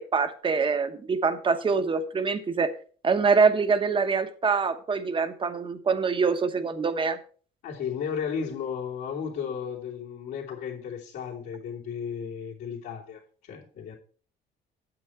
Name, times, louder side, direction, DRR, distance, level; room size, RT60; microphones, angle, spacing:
voice 1, 0.1-2.7 3.0-7.2, right 5 dB, 30° right, 1.1 m, -24 dB
voice 2, 7.6-14.0, left 7 dB, 75° left, 3.0 m, -34 dB
8.8 x 8.0 x 4.4 m
cardioid pair, 110°, 17 cm